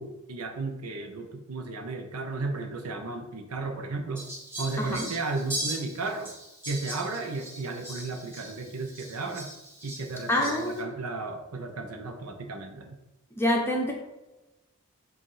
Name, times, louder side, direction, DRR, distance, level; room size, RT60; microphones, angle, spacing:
voice 1, 0.0-4.2 4.6-6.3 6.7-9.5 9.8-13.0, right 3 dB, 90° right, 3 dB, 0.8 m, -34 dB
Fowl, 4.1-10.8, right 1 dB, 10° right, 2.2 m, -39 dB
voice 2, 4.8-5.1 10.3-10.9 13.4-13.9, left 1 dB, 10° left, -1 dB, 0.7 m, -26 dB
7.8 x 2.6 x 5.6 m, 1.0 s
head